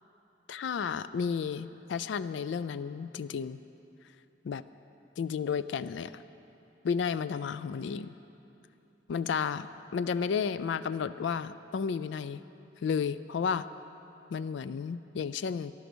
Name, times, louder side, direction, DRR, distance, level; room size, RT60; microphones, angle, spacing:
voice 1, 0.5-3.6 4.4-4.6 5.2-6.2 6.8-8.1 9.1-9.7 9.9-12.4 12.8-13.7 14.3-15.7, left 6 dB, 75° left, 14 dB, 0.3 m, -32 dB
14.5 x 11.0 x 6.2 m, 2.8 s
head